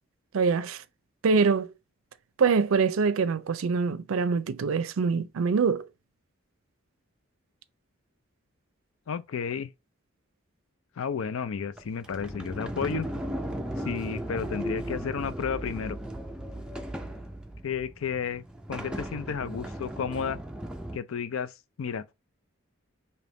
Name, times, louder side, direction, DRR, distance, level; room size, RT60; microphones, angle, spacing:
voice 1, 0.3-0.8 1.2-1.7 2.4-5.9, right 5 dB, 90° right, 0.4 m, -24 dB
voice 2, 9.1-9.7 11.0-13.1 13.8-16.0 17.6-18.4 18.7-20.4 20.9-21.5 21.8-22.1, left 6 dB, 90° left, 0.4 m, -32 dB
Sliding door, 11.8-21.0, right 1 dB, 5° right, 0.4 m, -36 dB
3.5 x 2.8 x 3.8 m
head